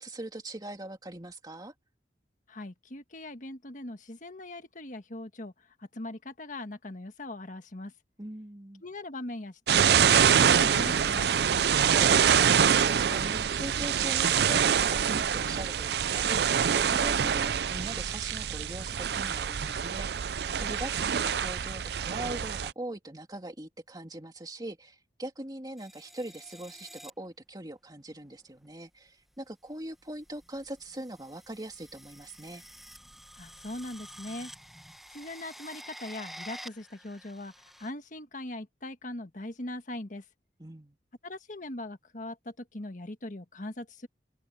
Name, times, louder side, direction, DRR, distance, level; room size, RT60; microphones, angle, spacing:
voice 1, 0.0-1.7 8.2-8.8 11.3-11.4 11.7-32.6 40.6-41.0, right 1 dB, 20° right, 2.6 m, -41 dB
voice 2, 2.5-7.9 8.8-11.3 33.4-34.5 35.1-40.2 41.2-44.1, left 1 dB, 45° left, 1.5 m, -40 dB
sound 1, 9.7-22.7, right 8 dB, 65° right, 0.5 m, -25 dB
sound 2, 25.8-27.1 28.4-28.7 29.7-37.9, equal, ahead, 1.5 m, -49 dB
open air
head